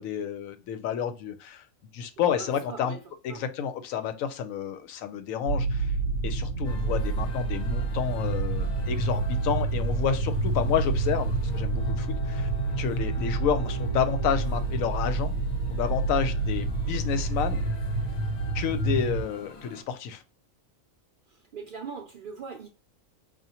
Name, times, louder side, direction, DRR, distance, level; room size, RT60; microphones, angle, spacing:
voice 1, 0.0-1.6 1.9-3.0 3.2-5.9 6.2-12.5 12.8-15.3 15.7-17.6 18.5-20.2, left 7 dB, 90° left, 1.0 m, -30 dB
voice 2, 2.3-3.0 3.3-3.4 21.5-22.7, right 5 dB, 60° right, 0.5 m, -40 dB
sound 1, 5.5-19.2, right 3 dB, 60° left, 1.0 m, -28 dB
sound 2, 6.6-19.8, left 2 dB, 45° left, 0.6 m, -45 dB
4.9 x 2.4 x 2.8 m
omnidirectional pair, 1.4 m